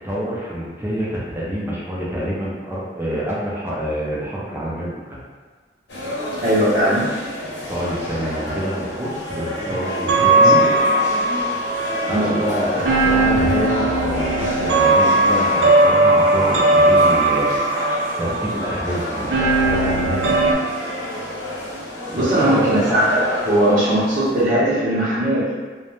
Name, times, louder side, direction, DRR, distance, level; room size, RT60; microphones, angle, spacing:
voice 1, 0.0-5.2 7.7-10.6 12.1-17.5 18.2-20.8 22.1-22.7, equal, 15° right, -6 dB, 0.5 m, -27 dB
sound 1, 5.9-24.4, left 1 dB, 70° left, 0.8 m, -30 dB
voice 2, 6.3-7.1 10.3-10.7 12.1-12.4 22.1-25.4, right 1 dB, 45° right, -14 dB, 0.7 m, -19 dB
sound 2, 9.7-20.5, right 2 dB, 70° right, 0.4 m, -18 dB
2.5 x 2.1 x 3.0 m, 1.4 s
head